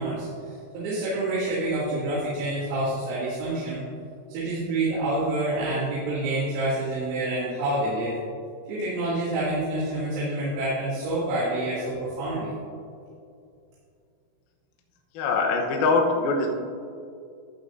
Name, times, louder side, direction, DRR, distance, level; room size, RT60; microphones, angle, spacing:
voice 1, 0.0-3.8 4.3-8.2 8.7-12.5, right 2 dB, 85° right, -11 dB, 5.3 m, -27 dB
voice 2, 15.1-16.5, left 3 dB, 85° left, 0 dB, 2.1 m, -23 dB
14.5 x 8.5 x 2.7 m, 2.4 s
omnidirectional pair, 6.0 m